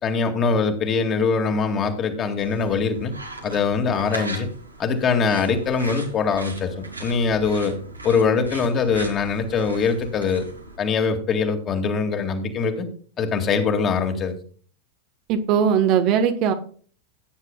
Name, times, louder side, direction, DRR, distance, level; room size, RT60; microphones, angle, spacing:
voice 1, 0.0-3.1 3.4-4.5 4.8-7.7 8.0-10.5 10.8-12.9 13.2-14.4, left 5 dB, 30° left, 5 dB, 2.4 m, -22 dB
sound 1, 2.4-10.8, right 2 dB, 85° right, 2.6 m, -38 dB
voice 2, 15.3-16.5, right 8 dB, 40° right, 7 dB, 1.4 m, -19 dB
17.0 x 9.7 x 2.4 m, 0.43 s
figure-of-eight pair, 90°, 0 cm